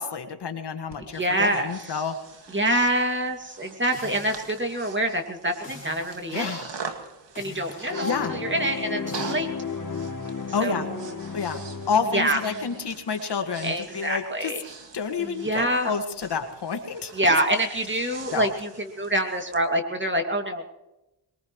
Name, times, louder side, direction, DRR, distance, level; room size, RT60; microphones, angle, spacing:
voice 1, 0.0-2.1 6.3-6.7 7.8-8.4 10.5-10.9 11.3-11.6 11.9-14.5 14.9-17.1 18.3-18.5, left 5 dB, 60° left, 5 dB, 1.9 m, -29 dB
Breathing, 0.9-19.6, right 5 dB, 70° right, 2.2 m, -44 dB
voice 2, 1.1-1.9 2.5-6.5 7.4-9.5 10.6-11.1 12.1-12.4 13.6-14.6 15.2-15.9 17.1-20.6, right 1 dB, 25° right, 4 dB, 2.5 m, -26 dB
sound 1, 3.9-4.7 5.6-6.3 7.4-7.9 9.1-9.4, left 1 dB, 20° left, 4.6 m, -44 dB
sound 2, 7.9-12.9, left 5 dB, 45° left, 2.8 m, -34 dB
21.5 x 20.5 x 3.2 m, 0.95 s
cardioid pair, 55°, 45 cm